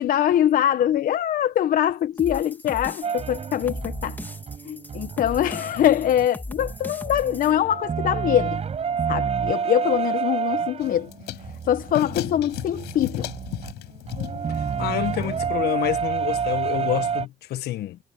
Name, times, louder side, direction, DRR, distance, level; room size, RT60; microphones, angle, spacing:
voice 1, 0.0-4.2 4.6-8.6 9.1-11.1 11.7-13.3, left 11 dB, 55° left, 0.8 m, -23 dB
sound 1, 2.2-7.5, left 2 dB, 10° left, 2.7 m, -38 dB
sound 2, 3.0-6.3 6.6-17.3, right 6 dB, 40° right, 6.1 m, -29 dB
sound 3, 10.8-15.5, left 18 dB, 90° left, 6.3 m, -36 dB
voice 2, 14.5-18.0, left 14 dB, 75° left, 1.5 m, -28 dB
cardioid pair, 110°, 17 cm